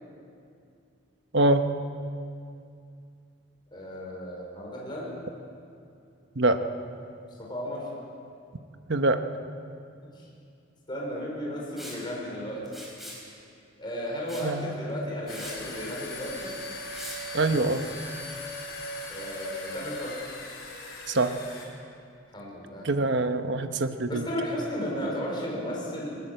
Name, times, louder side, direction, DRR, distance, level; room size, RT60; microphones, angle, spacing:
voice 1, 1.3-1.7 6.4-6.6 8.9-9.2 14.4-14.8 17.3-17.8 21.1-21.4 22.8-24.3, right 2 dB, 65° right, 8 dB, 1.1 m, -24 dB
voice 2, 3.7-5.1 7.4-7.9 10.2-10.3 10.9-12.6 13.8-16.5 19.1-20.2 22.3-22.9 24.1-26.2, equal, 25° left, -4 dB, 5.1 m, -34 dB
Liquid, 11.8-12.0 12.7-13.2 14.3-14.5 14.9-15.0 15.3-15.6 16.9-17.2, equal, ahead, 4.7 m, -41 dB
sound 1, 15.3-21.6, left 1 dB, 70° left, 4.9 m, -39 dB
20.0 x 19.0 x 7.8 m, 2.5 s
head